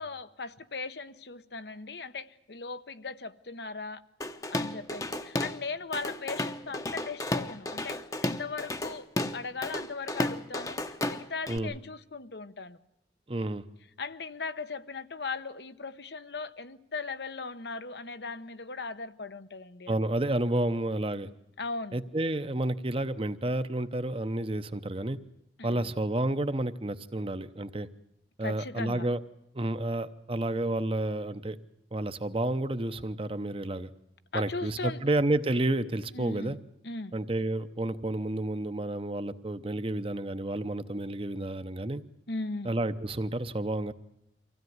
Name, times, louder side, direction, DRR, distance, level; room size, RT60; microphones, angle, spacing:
voice 1, 0.0-4.0 4.5-9.1 9.3-12.8 14.0-20.0 21.6-22.0 25.6-25.9 28.4-29.1 34.3-35.0 36.1-36.5 36.8-37.1 42.3-42.7, left 3 dB, 70° left, 0.9 m, -38 dB
Drum kit / Drum, 4.2-5.6 5.9-11.6, left 1 dB, 20° left, 0.9 m, -33 dB
voice 2, 13.3-13.6 19.9-21.3 21.9-25.2 25.6-27.9 28.4-29.2 29.5-31.6 31.9-33.9 34.3-36.6 37.1-42.0 42.6-43.9, right 1 dB, 30° right, 0.8 m, -30 dB
24.5 x 16.0 x 9.5 m
head